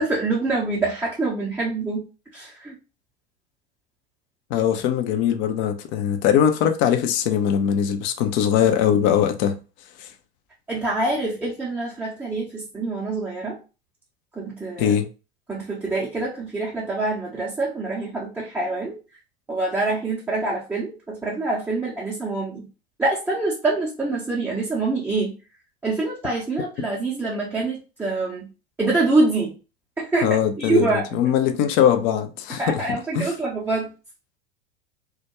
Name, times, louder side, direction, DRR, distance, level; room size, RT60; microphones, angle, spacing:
voice 1, 0.0-2.0 2.3-2.7 10.7-13.6 14.4-14.9 15.5-19.0 19.5-22.6 23.0-25.3 25.8-28.5 28.8-29.5 30.0-31.0 32.6-33.9, right 2 dB, 5° right, 0.6 m, -25 dB
voice 2, 4.5-9.6 10.0-10.1 14.8-15.1 30.2-32.8 33.1-33.3, left 9 dB, 40° left, 0.5 m, -21 dB
2.3 x 2.1 x 2.9 m
figure-of-eight pair, 80°, 32 cm